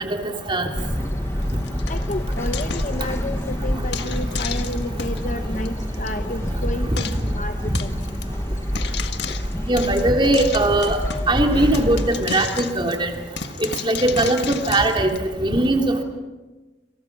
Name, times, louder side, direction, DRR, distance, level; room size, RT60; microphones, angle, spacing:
sound 1, 0.7-12.3, equal, 15° left, 1.2 m, -27 dB
Frying (food), 1.4-3.4 3.9-5.2 5.6-5.7 5.9-6.1 6.4-6.5 7.0-7.3 7.7-8.2 8.7-11.4 11.7-15.2, left 6 dB, 60° left, 1.6 m, -33 dB
voice 1, 1.9-7.5 7.8-7.9, left 1 dB, 40° left, 7 dB, 1.0 m, -31 dB
voice 2, 9.7-11.0 11.3-13.1 13.8-15.1 15.4-16.0, right 1 dB, 25° right, 3 dB, 3.1 m, -19 dB
28.5 x 27.5 x 6.1 m, 1.2 s
head